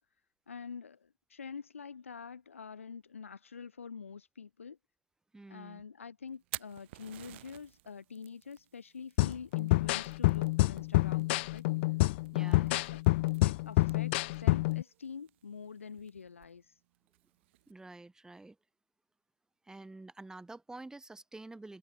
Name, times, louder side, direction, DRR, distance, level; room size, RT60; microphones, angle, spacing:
voice 1, 0.5-4.8 5.5-11.6 12.3-13.0 13.4-16.7, left 6 dB, 80° left, 2.1 m, -46 dB
voice 2, 5.3-5.8 12.3-12.7 17.7-18.6 19.6-21.8, right 2 dB, 10° right, 7.0 m, -48 dB
Fire, 6.3-17.7, right 18 dB, 60° right, 5.7 m, -53 dB
sound 1, 9.2-14.8, left 21 dB, 60° left, 0.6 m, -28 dB
figure-of-eight pair, 85°, 7 cm